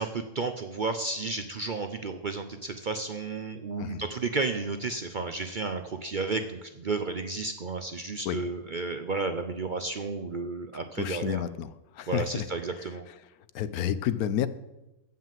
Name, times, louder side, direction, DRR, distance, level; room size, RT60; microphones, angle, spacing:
voice 1, 0.0-11.4 12.1-13.0, right 3 dB, 50° right, 7 dB, 0.6 m, -32 dB
voice 2, 11.0-11.7 12.0-12.4 13.5-14.5, left 10 dB, 80° left, 15 dB, 1.2 m, -30 dB
15.0 x 5.8 x 7.6 m, 0.98 s
omnidirectional pair, 1.5 m